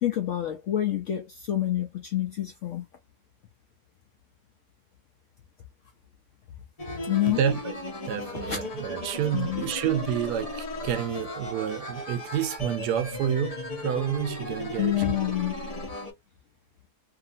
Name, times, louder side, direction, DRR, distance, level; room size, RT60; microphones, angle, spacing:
voice 1, 0.0-2.9 7.1-7.4 8.4-8.6 9.3-9.6 14.8-15.6, left 12 dB, 75° left, 0.7 m, -27 dB
sound 1, 6.8-16.1, left 1 dB, 35° left, 0.6 m, -36 dB
voice 2, 7.3-7.7 8.1-14.9, right 9 dB, 75° right, 1.1 m, -29 dB
2.8 x 2.6 x 2.5 m
omnidirectional pair, 1.8 m